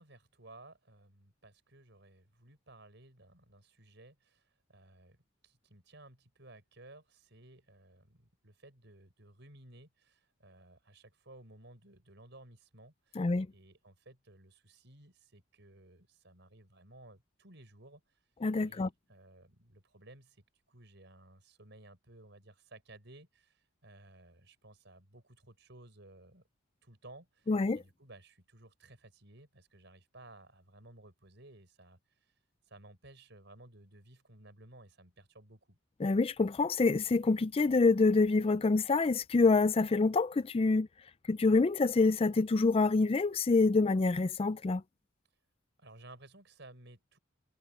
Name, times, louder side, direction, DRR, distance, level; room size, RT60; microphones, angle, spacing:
voice 1, 0.0-18.2 18.6-26.4 26.8-32.3 32.7-35.8 45.8-47.2, right 2 dB, 60° right, 6.3 m, -57 dB
voice 2, 13.2-13.5 18.4-18.9 27.5-27.8 36.0-40.9 41.3-44.8, left 3 dB, 30° left, 0.4 m, -26 dB
head